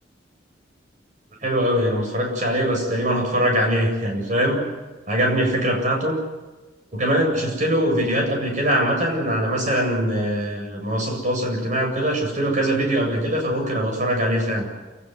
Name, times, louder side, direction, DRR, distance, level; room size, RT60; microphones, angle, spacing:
voice 1, 1.4-4.6 5.1-6.2 6.9-14.7, equal, 45° right, 2 dB, 7.9 m, -22 dB
28.0 x 18.5 x 8.1 m, 1.2 s
head